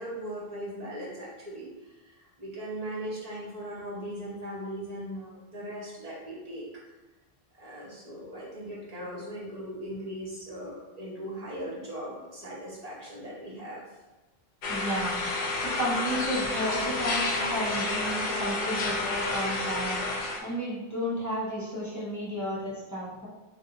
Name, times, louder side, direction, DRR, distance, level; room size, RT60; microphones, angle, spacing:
voice 1, 0.0-6.7 7.6-13.8, equal, 40° right, -5 dB, 0.9 m, -39 dB
sound 1, 14.6-20.4, left 2 dB, 65° left, 0.7 m, -30 dB
voice 2, 14.7-15.2 15.6-20.0 20.4-23.3, equal, 20° left, -7 dB, 0.6 m, -32 dB
2.6 x 2.5 x 3.8 m, 1.1 s
omnidirectional pair, 1.1 m